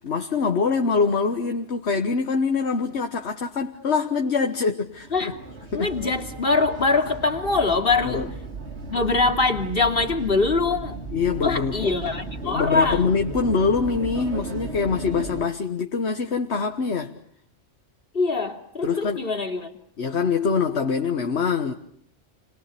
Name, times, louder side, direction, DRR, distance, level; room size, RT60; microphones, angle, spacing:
voice 1, 0.0-5.3 5.7-5.9 8.0-8.3 11.1-11.9 12.4-17.1 18.8-19.3 20.0-21.7, left 5 dB, 65° left, 1.7 m, -24 dB
sound 1, 4.9-15.4, right 3 dB, 65° right, 3.0 m, -35 dB
voice 2, 5.7-8.3 8.9-11.0 11.4-13.1 18.1-19.7, left 3 dB, 50° left, 3.2 m, -23 dB
29.5 x 23.0 x 8.5 m
omnidirectional pair, 1.2 m